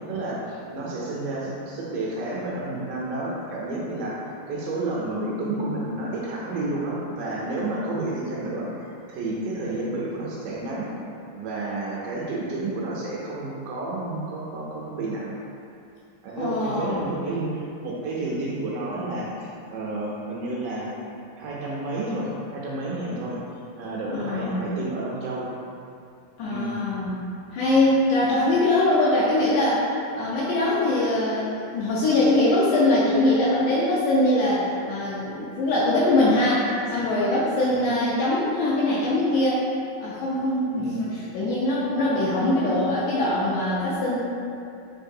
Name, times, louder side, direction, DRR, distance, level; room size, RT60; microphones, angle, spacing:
voice 1, 0.1-10.9 11.3-15.4 16.2-20.9 21.4-23.4 23.8-25.5 26.5-26.8 37.7-38.0 40.7-41.1, right 2 dB, 80° right, -5 dB, 2.0 m, -30 dB
voice 2, 16.4-17.1 24.1-24.7 26.4-27.2 27.5-29.9 30.1-39.6 40.0-44.2, left 1 dB, 80° left, -7 dB, 1.8 m, -22 dB
6.4 x 3.0 x 2.6 m, 2.5 s
omnidirectional pair, 4.0 m